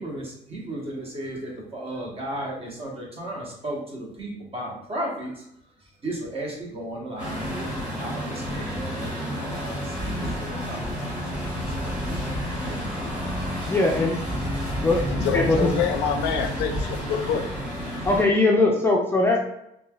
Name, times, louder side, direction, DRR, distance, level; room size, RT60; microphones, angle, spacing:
voice 1, 0.0-5.4 6.0-7.7 8.0-10.8 11.1-11.9 12.6-12.9, right 1 dB, 35° right, -2 dB, 0.9 m, -35 dB
Truck, 7.2-18.2, equal, 10° right, 1.4 m, -30 dB
voice 2, 13.7-14.1 14.8-15.0 15.3-15.7 18.0-19.5, left 2 dB, 15° left, -1 dB, 0.3 m, -20 dB
voice 3, 14.9-17.5, left 7 dB, 80° left, 6 dB, 0.4 m, -26 dB
3.1 x 2.3 x 2.2 m, 0.78 s
cardioid pair, 110°, 17 cm